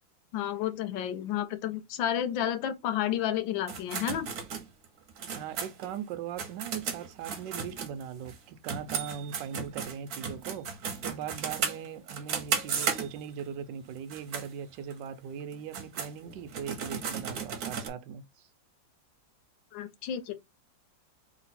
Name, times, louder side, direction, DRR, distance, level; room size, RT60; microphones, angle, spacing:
voice 1, 0.3-4.3 19.7-20.3, left 10 dB, 80° left, 1.3 m, -31 dB
sound 1, 3.7-8.4 8.6-13.4 14.0-14.5 14.9-15.0 15.5-17.9, right 6 dB, 60° right, 1.2 m, -35 dB
voice 2, 5.3-10.7 11.0-18.5, right 8 dB, 75° right, 1.2 m, -40 dB
3.1 x 2.9 x 4.1 m
omnidirectional pair, 2.1 m